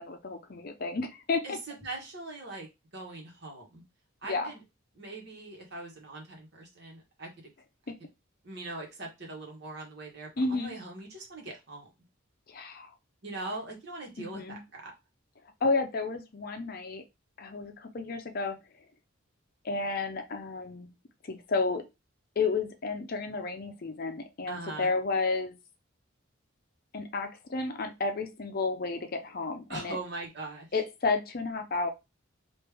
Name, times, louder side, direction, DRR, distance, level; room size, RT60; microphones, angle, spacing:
voice 1, 0.0-1.6 4.2-4.5 7.9-8.0 10.4-10.8 12.5-12.9 14.2-14.6 15.6-17.0 17.4-18.6 19.6-20.9 21.2-21.8 22.4-25.6 26.9-30.0 30.7-31.9, left 3 dB, 45° left, 6 dB, 0.5 m, -31 dB
voice 2, 1.4-2.7 2.9-3.8 4.2-4.6 4.9-7.5 8.4-11.9 13.2-14.9 24.5-24.9 29.7-30.7, right 2 dB, 55° right, 0 dB, 1.3 m, -41 dB
3.3 x 2.5 x 3.4 m, 0.24 s
head